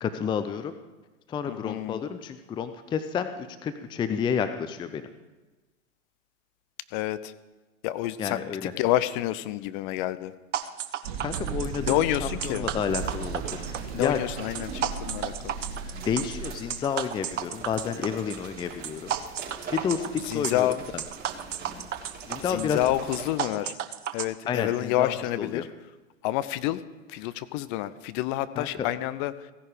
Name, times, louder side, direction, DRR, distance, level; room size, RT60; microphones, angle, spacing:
voice 1, 0.0-0.7 1.3-5.1 8.2-8.7 11.2-14.2 16.1-19.1 19.7-20.7 22.3-22.8 24.5-25.6 28.6-28.9, left 7 dB, 10° left, 10 dB, 0.5 m, -30 dB
voice 2, 1.5-2.0 6.9-7.3 7.8-8.4 8.8-10.3 11.8-12.7 13.9-15.6 20.3-20.8 22.5-23.7 24.1-25.7 26.2-26.8 27.1-29.3, left 14 dB, 40° left, 15 dB, 0.8 m, -28 dB
sound 1, 10.5-24.2, right 10 dB, 65° right, 1.1 m, -33 dB
sound 2, 11.0-16.6, right 5 dB, 50° right, 2.1 m, -36 dB
sound 3, 12.7-23.5, right 4 dB, 25° right, 4.1 m, -44 dB
16.0 x 10.5 x 5.0 m, 1.2 s
hypercardioid pair, 105°, 39 cm